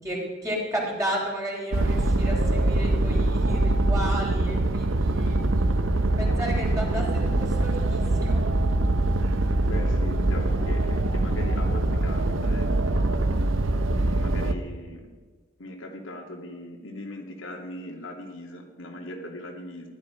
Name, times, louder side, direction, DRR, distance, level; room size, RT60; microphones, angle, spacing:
voice 1, 0.0-5.4 6.2-8.4, right 1 dB, 15° right, -3 dB, 3.4 m, -33 dB
sound 1, 1.7-14.5, right 2 dB, 80° right, 0.9 m, -23 dB
voice 2, 9.7-13.5 13.9-15.1 15.6-19.9, left 1 dB, 80° left, 1 dB, 2.6 m, -39 dB
15.5 x 11.5 x 5.1 m, 1.5 s
head